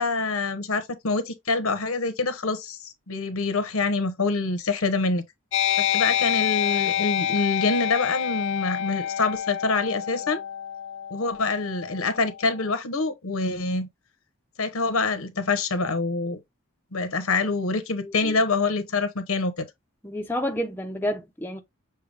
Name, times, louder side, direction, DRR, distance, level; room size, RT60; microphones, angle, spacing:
voice 1, 0.0-5.2 5.8-10.4 11.1-13.9 14.6-16.4 16.9-19.6, left 3 dB, 85° left, 1.0 m, -26 dB
sound 1, 5.5-12.6, left 10 dB, 60° left, 0.3 m, -27 dB
voice 2, 18.0-18.3 20.0-21.6, equal, 10° left, 0.6 m, -30 dB
6.7 x 2.3 x 3.4 m
head